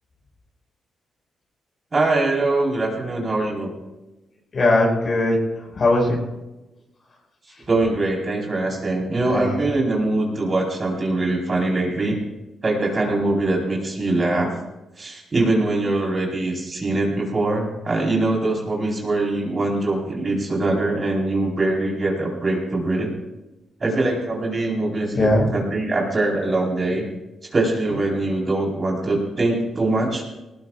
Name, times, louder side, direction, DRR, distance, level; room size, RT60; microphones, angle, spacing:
voice 1, 1.9-3.7 7.7-12.2 12.6-14.5 15.0-23.1 23.8-27.0 27.5-30.2, right 2 dB, 35° right, -1 dB, 4.4 m, -22 dB
voice 2, 4.5-6.2 7.5-7.6 9.3-9.7 25.1-25.5, left 1 dB, 45° left, 0 dB, 5.3 m, -20 dB
19.5 x 19.5 x 2.5 m, 1.0 s
cardioid pair, 100°, 0 cm